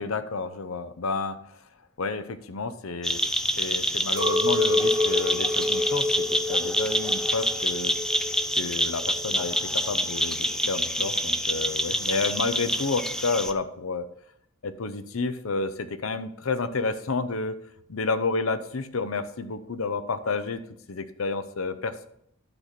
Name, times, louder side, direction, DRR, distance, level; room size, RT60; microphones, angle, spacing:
voice 1, 0.0-1.4 2.0-3.2 3.6-7.9 8.5-14.1 14.6-17.6 17.9-22.1, left 3 dB, 75° left, 11 dB, 0.8 m, -30 dB
sound 1, 3.0-13.5, equal, 5° left, 0.4 m, -27 dB
Chink clink, 4.2-9.6, left 2 dB, 20° right, 1.0 m, -28 dB
11.0 x 4.2 x 5.9 m, 0.71 s
head